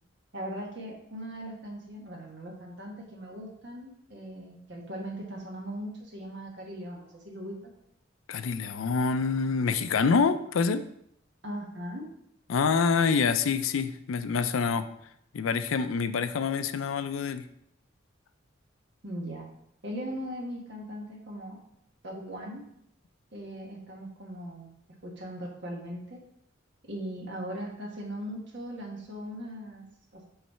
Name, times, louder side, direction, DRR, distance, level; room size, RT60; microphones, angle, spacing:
voice 1, 0.3-7.7 11.4-12.0 19.0-19.5 19.8-21.6 22.0-22.6 23.3-24.7 25.0-26.2 26.9-29.8 30.1-30.3, equal, 60° right, 0 dB, 1.4 m, -39 dB
voice 2, 8.3-10.8 12.5-14.9 15.3-17.4, left 5 dB, 85° left, 11 dB, 0.4 m, -26 dB
5.7 x 3.2 x 5.5 m, 0.74 s
head